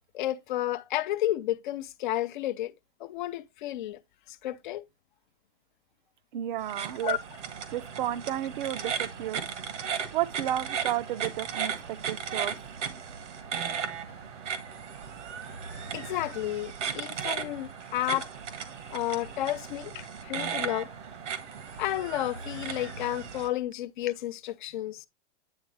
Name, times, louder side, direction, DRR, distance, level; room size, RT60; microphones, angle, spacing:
voice 1, 0.1-2.7 3.0-4.0 4.3-4.8 7.0-7.2 15.9-18.3 18.9-20.9 21.8-25.1, left 14 dB, 45° left, 0.5 m, -32 dB
voice 2, 6.3-7.2 7.7-9.4 10.1-12.6, right 12 dB, 45° right, 0.5 m, -32 dB
sound 1, 6.6-23.5, right 7 dB, 85° right, 1.5 m, -36 dB
9.6 x 3.5 x 3.2 m
hypercardioid pair, 150°, 35 cm